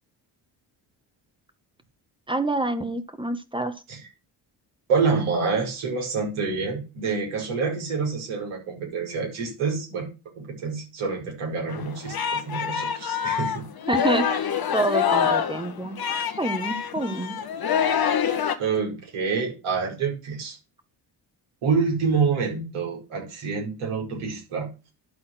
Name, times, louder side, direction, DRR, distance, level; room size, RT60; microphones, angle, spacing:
voice 1, 2.3-3.8 13.9-14.5 14.7-16.0 16.4-17.3, right 2 dB, 10° right, 10 dB, 1.7 m, -27 dB
voice 2, 4.9-10.1 10.6-13.7 18.6-20.6 21.6-24.7, right 5 dB, 75° right, -1 dB, 5.0 m, -27 dB
Singing, 11.7-18.6, left 8 dB, 45° left, 1.5 m, -26 dB
12.0 x 4.2 x 6.1 m, 0.30 s
supercardioid pair, 55°, 49 cm